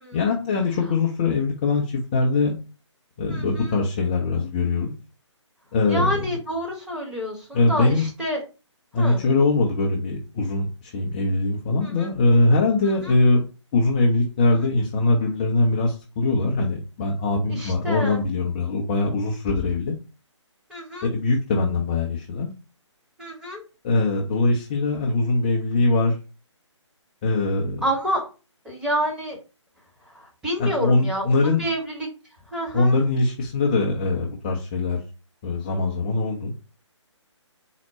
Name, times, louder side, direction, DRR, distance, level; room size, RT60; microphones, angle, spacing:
voice 1, 0.1-1.8 2.1-2.5 3.2-4.9 5.7-6.2 7.5-8.1 8.9-13.4 13.7-20.0 21.0-22.5 23.8-26.1 27.2-27.9 30.6-31.6 32.7-35.0 35.4-36.5, left 3 dB, 15° left, -1 dB, 0.4 m, -22 dB
voice 2, 3.3-3.7 5.9-8.4 9.0-9.2 11.8-12.1 13.0-13.1 14.5-14.7 17.5-18.2 20.7-21.1 23.2-23.6 27.8-28.2 28.6-29.4 30.1-31.3 31.6-32.1 32.5-32.9, equal, 5° right, -4 dB, 0.9 m, -28 dB
4.4 x 2.1 x 4.0 m, 0.32 s
figure-of-eight pair, 140°, 16 cm